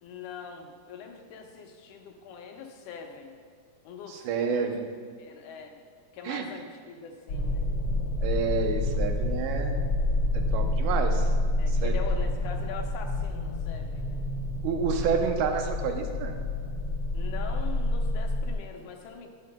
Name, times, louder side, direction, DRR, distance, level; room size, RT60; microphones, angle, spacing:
voice 1, 0.0-3.4 3.8-4.7 5.2-5.8 6.1-7.7 11.6-14.3 17.1-19.3, left 6 dB, 80° left, 3 dB, 2.2 m, -42 dB
voice 2, 4.1-4.8 6.2-6.4 8.2-9.9 10.3-11.3 11.8-11.9 14.6-16.4, right 6 dB, 90° right, 5 dB, 2.3 m, -29 dB
sound 1, 7.3-18.5, left 2 dB, 55° left, 1.5 m, -28 dB
10.5 x 10.0 x 2.2 m, 2.1 s
omnidirectional pair, 3.5 m